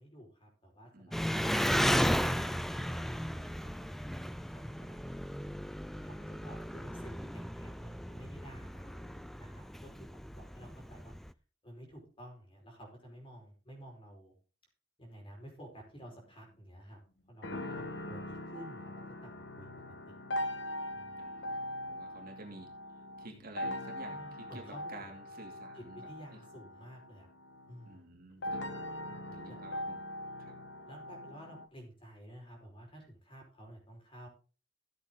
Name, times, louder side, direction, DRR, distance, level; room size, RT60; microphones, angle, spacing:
voice 1, 0.0-4.0 4.3-5.0 6.0-11.1 11.6-14.3 15.0-17.0 17.3-19.7 20.1-20.2 20.9-21.1 24.1-25.1 25.7-27.3 27.7-28.0 29.0-29.6 30.9-34.3, equal, 30° left, 1 dB, 5.1 m, -52 dB
voice 2, 0.9-1.5 21.2-22.7 23.2-26.1 27.8-28.7 29.3-30.0 30.4-30.5, right 2 dB, 55° right, 2 dB, 2.9 m, -51 dB
Engine, 1.1-11.3, equal, ahead, 0.4 m, -35 dB
sound 1, 17.4-31.7, left 1 dB, 70° left, 1.5 m, -41 dB
14.0 x 7.9 x 3.9 m, 0.35 s
head